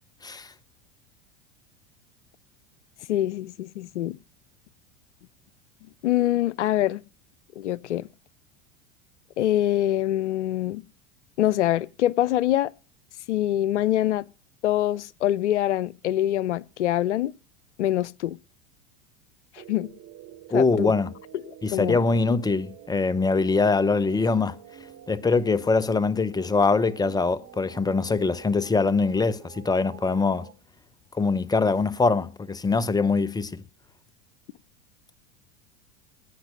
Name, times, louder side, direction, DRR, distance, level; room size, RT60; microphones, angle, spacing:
voice 1, 3.1-4.2 6.0-7.0 7.6-8.1 9.4-10.8 11.4-12.7 13.3-14.2 14.6-17.3 17.8-18.4 19.7-19.9 20.5-20.9 21.3-21.4 21.7-22.1, left 13 dB, 80° left, 0.6 m, -24 dB
sound 1, 19.6-30.5, right 10 dB, 40° right, 2.7 m, -48 dB
voice 2, 20.5-21.1 21.6-24.6 25.1-30.5 31.2-33.6, left 4 dB, 10° left, 0.7 m, -23 dB
17.5 x 5.9 x 6.2 m
hypercardioid pair, 90°, 35 cm